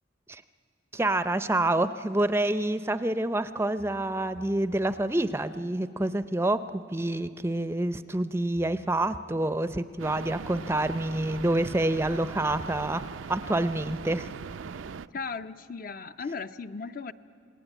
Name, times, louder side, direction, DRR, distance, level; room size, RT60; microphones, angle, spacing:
voice 1, 0.9-14.4, right 1 dB, 15° right, 12 dB, 0.5 m, -27 dB
sound 1, 1.1-1.2 3.8-5.4 8.5-9.6 12.5-13.8, right 1 dB, 70° left, 1.0 m, -53 dB
sound 2, 10.0-15.1, right 5 dB, 85° right, 0.5 m, -40 dB
voice 2, 15.1-17.1, left 4 dB, 45° left, 10 dB, 0.6 m, -36 dB
27.5 x 19.5 x 9.2 m, 2.6 s
head